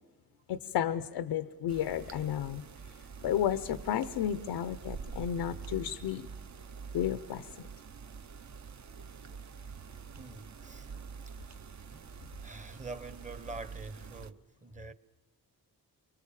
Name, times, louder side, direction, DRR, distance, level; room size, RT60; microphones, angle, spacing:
voice 1, 0.5-2.6 3.2-6.3 6.9-7.5, left 10 dB, 90° left, 0.8 m, -32 dB
sound 1, 1.7-14.3, right 5 dB, 45° right, 0.8 m, -46 dB
voice 2, 10.2-10.9 11.3-11.4 11.9-14.9, right 3 dB, 20° right, 0.9 m, -46 dB
28.5 x 24.0 x 7.4 m
cardioid pair, 90°, 39 cm